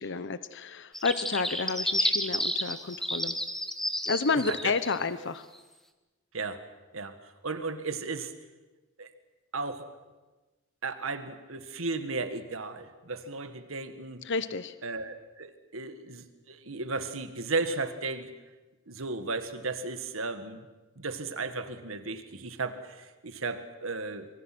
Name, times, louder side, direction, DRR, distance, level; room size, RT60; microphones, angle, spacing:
voice 1, 0.0-3.4 4.0-5.5 14.2-14.7, left 4 dB, 60° left, 13 dB, 0.8 m, -30 dB
sound 1, 0.9-5.0, equal, ahead, 1.4 m, -30 dB
voice 2, 7.4-8.3 9.0-9.1 9.5-9.9 10.8-14.2 14.8-18.3 18.9-20.6 21.0-24.3, right 3 dB, 90° right, 9 dB, 1.8 m, -35 dB
26.0 x 23.5 x 6.1 m, 1.2 s
head